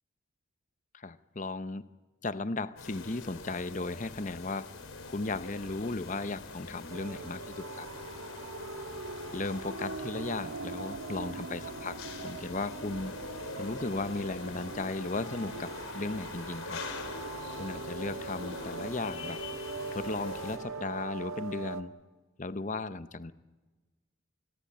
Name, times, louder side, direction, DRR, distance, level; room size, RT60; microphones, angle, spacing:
voice 1, 0.9-1.9 2.2-4.7 5.1-7.9 9.3-12.0 12.2-13.1 13.6-16.8 17.6-19.4 19.9-21.9 22.4-23.3, left 3 dB, 35° left, 13 dB, 0.8 m, -36 dB
sound 1, 2.8-20.6, left 3 dB, 80° left, 4.1 m, -43 dB
sound 2, 6.9-21.8, right 3 dB, 80° right, 1.6 m, -42 dB
26.5 x 20.5 x 8.7 m, 1.3 s
head